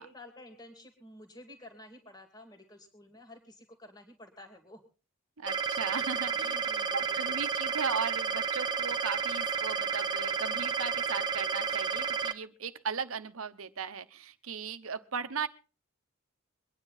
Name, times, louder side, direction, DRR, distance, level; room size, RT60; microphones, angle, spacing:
voice 1, 0.0-4.8 6.4-7.4, left 1 dB, 20° left, 4 dB, 2.4 m, -52 dB
voice 2, 5.4-6.6 6.9-15.5, right 5 dB, 80° right, 11 dB, 0.9 m, -37 dB
sound 1, 5.5-12.3, right 6 dB, 20° right, 0.9 m, -31 dB
23.5 x 9.9 x 4.0 m, 0.35 s
head